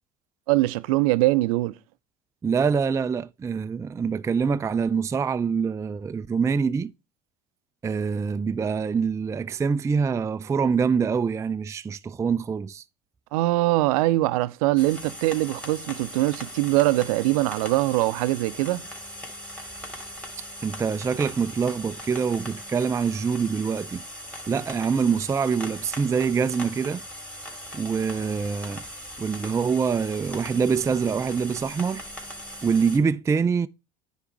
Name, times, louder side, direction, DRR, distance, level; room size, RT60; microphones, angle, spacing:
voice 1, 0.5-1.8 13.3-18.8, right 18 dB, 75° right, 0.5 m, -22 dB
voice 2, 2.4-6.9 7.8-12.8 20.4-24.0 24.5-27.0 27.7-28.8 29.2-32.0 32.6-33.7, right 6 dB, 15° right, 0.3 m, -25 dB
sound 1, 14.8-33.0, equal, 5° left, 3.0 m, -40 dB
9.5 x 3.6 x 4.5 m
hypercardioid pair, 70°, 18 cm